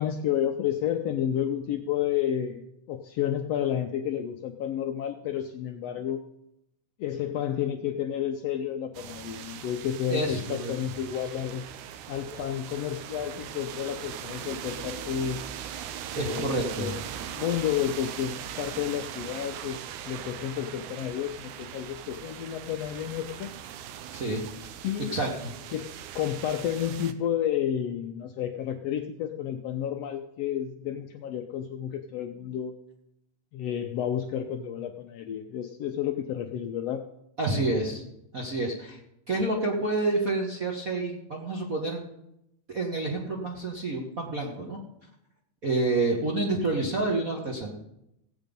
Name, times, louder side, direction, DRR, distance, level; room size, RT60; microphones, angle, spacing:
voice 1, 0.0-2.6 2.9-6.2 7.0-11.6 12.1-15.4 16.2-17.0 17.2-19.8 20.0-23.5 24.8-25.1 25.7-32.7 33.5-37.1, left 10 dB, 75° left, 5 dB, 1.5 m, -31 dB
sound 1, 8.9-27.1, right 10 dB, 80° right, 2.2 m, -40 dB
voice 2, 10.1-10.7 12.3-12.4 16.1-16.9 24.1-24.4 25.1-25.5 37.4-38.0 38.3-39.0 39.3-42.0 42.7-44.8 45.6-47.7, right 2 dB, 50° right, -1 dB, 1.1 m, -28 dB
16.5 x 8.2 x 5.3 m, 0.82 s
omnidirectional pair, 3.5 m